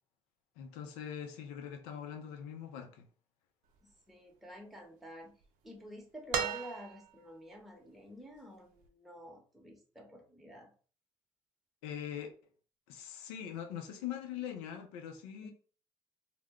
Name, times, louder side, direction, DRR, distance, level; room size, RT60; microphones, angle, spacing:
voice 1, 0.6-3.1 11.8-12.3 12.9-15.5, left 9 dB, 90° left, 0.4 m, -42 dB
voice 2, 3.8-5.3 5.6-10.7 15.4-15.5, equal, ahead, 0.8 m, -50 dB
sound 1, 6.3-7.3 8.8-8.9, right 7 dB, 75° right, 0.4 m, -36 dB
2.2 x 2.0 x 3.5 m
supercardioid pair, 55°, 14 cm